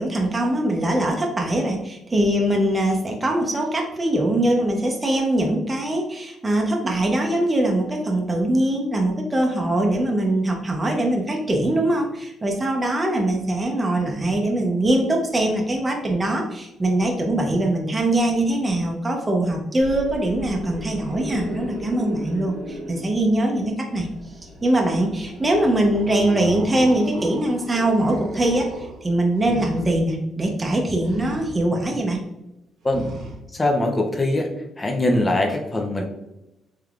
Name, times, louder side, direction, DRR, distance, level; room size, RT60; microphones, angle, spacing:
voice 1, 0.0-24.1 24.6-32.2, right 1 dB, 20° right, 1 dB, 0.6 m, -22 dB
sound 1, 19.8-23.5 23.8-29.9 31.0-31.5 32.9-33.4, right 1 dB, 70° right, 0.9 m, -36 dB
voice 2, 33.5-34.5 34.8-36.0, left 1 dB, 20° left, 2 dB, 0.5 m, -22 dB
3.4 x 3.2 x 2.4 m, 0.90 s
cardioid pair, 90°, 0 cm